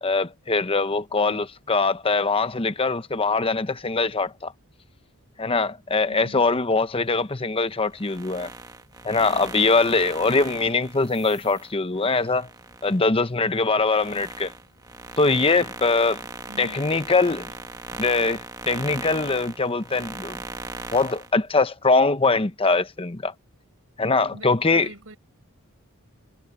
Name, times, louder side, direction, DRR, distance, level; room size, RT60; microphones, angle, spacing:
voice 1, 0.0-4.5 5.4-8.5 9.0-12.5 12.8-14.5 15.2-16.2 16.6-17.5 18.0-20.4 20.9-23.3 24.0-24.9, left 3 dB, 25° left, 0.8 m, -22 dB
voice 2, 1.1-1.5 6.1-6.5 16.5-16.8 24.3-25.2, right 1 dB, 65° right, 6.2 m, -43 dB
sound 1, 7.9-13.0 13.5-21.3, right 3 dB, 15° right, 1.3 m, -38 dB
head